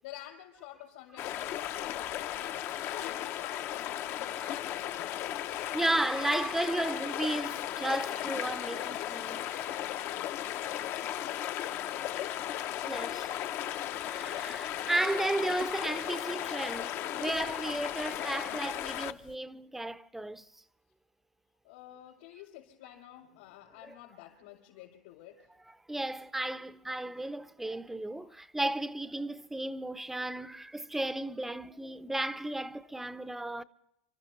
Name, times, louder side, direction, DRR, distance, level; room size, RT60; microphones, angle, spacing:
voice 1, 0.0-5.8 9.7-12.4 21.6-25.5 28.1-28.5 32.8-33.1, left 13 dB, 75° left, 5.0 m, -51 dB
sound 1, 1.2-19.3, left 12 dB, 40° left, 0.6 m, -36 dB
voice 2, 5.7-9.8 12.8-13.3 14.0-20.5 23.8-23.9 25.9-33.6, right 1 dB, 5° right, 0.5 m, -34 dB
29.5 x 13.5 x 3.1 m
supercardioid pair, 135°, 6 cm